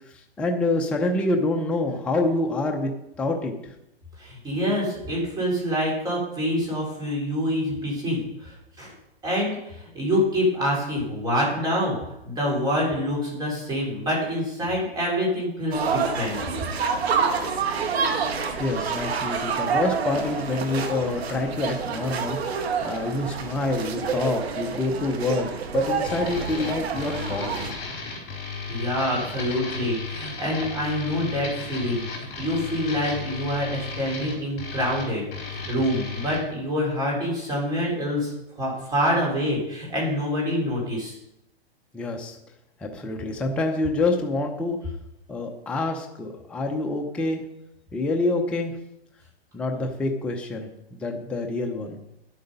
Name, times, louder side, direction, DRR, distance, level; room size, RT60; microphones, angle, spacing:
voice 1, 0.4-2.9 3.2-3.7 18.6-22.4 22.8-27.7 41.9-42.4 42.8-44.8 45.3-47.4 47.9-48.7 49.5-52.0, left 2 dB, 5° left, 2 dB, 0.5 m, -26 dB
voice 2, 4.2-8.9 9.2-12.0 12.2-16.4 28.7-35.3 35.5-41.2, equal, 10° right, -3 dB, 3.9 m, -26 dB
sound 1, 15.7-27.7, right 5 dB, 75° right, 2.0 m, -28 dB
sound 2, 26.0-36.4, left 4 dB, 30° left, 4.5 m, -35 dB
10.5 x 8.0 x 5.4 m, 0.85 s
hypercardioid pair, 155°, 31 cm